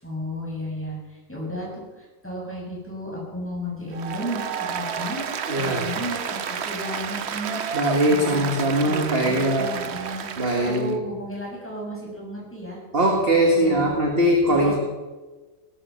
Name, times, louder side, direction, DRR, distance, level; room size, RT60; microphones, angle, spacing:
voice 1, 0.0-5.2 5.6-10.3 10.5-12.8 13.5-14.0 14.5-14.8, equal, 5° left, -4 dB, 7.1 m, -34 dB
Applause, 3.9-10.9, right 7 dB, 60° right, 0.7 m, -31 dB
voice 2, 5.5-5.9 7.7-9.7 10.4-11.0 12.9-14.8, right 1 dB, 30° right, 1 dB, 2.0 m, -21 dB
18.0 x 13.0 x 5.8 m, 1.2 s
omnidirectional pair, 2.1 m